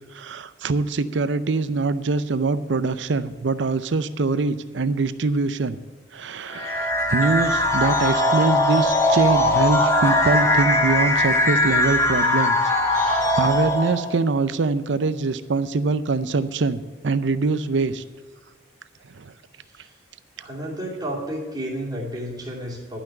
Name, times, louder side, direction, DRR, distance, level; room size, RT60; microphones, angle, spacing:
voice 1, 0.1-5.8 6.1-18.0 19.1-19.3, right 3 dB, 65° right, 14 dB, 0.5 m, -24 dB
sound 1, 6.5-14.1, left 1 dB, 15° left, 1.4 m, -20 dB
voice 2, 20.4-23.0, right 1 dB, 20° right, -4 dB, 2.5 m, -31 dB
11.5 x 6.0 x 8.8 m, 1.3 s
head